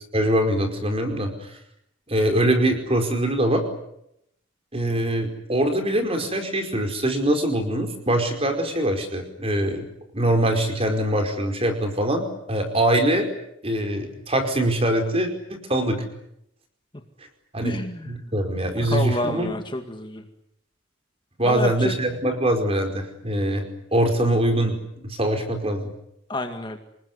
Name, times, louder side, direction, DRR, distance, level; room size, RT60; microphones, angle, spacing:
voice 1, 0.1-1.6 2.1-3.6 4.7-9.9 10.1-13.3 13.6-16.0 17.5-17.8 18.1-19.5 21.4-24.7 25.0-25.9, right 1 dB, 30° right, 5 dB, 5.0 m, -23 dB
voice 2, 17.6-18.2 18.8-20.2 21.4-21.9 26.3-26.8, left 1 dB, 25° left, 5 dB, 2.1 m, -29 dB
27.5 x 20.0 x 9.6 m, 0.79 s
head